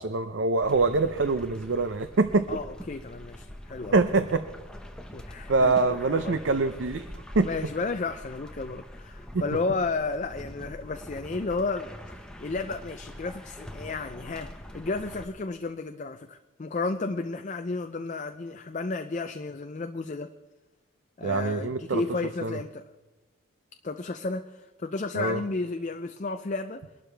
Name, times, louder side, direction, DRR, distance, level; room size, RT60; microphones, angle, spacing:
voice 1, 0.0-2.5 3.9-4.4 5.5-7.5 9.3-9.4 21.2-22.0 22.4-22.6 25.1-25.4, right 3 dB, 60° right, 10 dB, 0.6 m, -24 dB
sound 1, 0.6-15.3, equal, 5° left, 0.9 m, -44 dB
voice 2, 2.5-4.0 5.1-6.4 7.4-20.3 21.2-22.9 23.8-26.8, left 3 dB, 35° left, 8 dB, 0.5 m, -33 dB
23.0 x 12.0 x 3.4 m, 1.2 s
head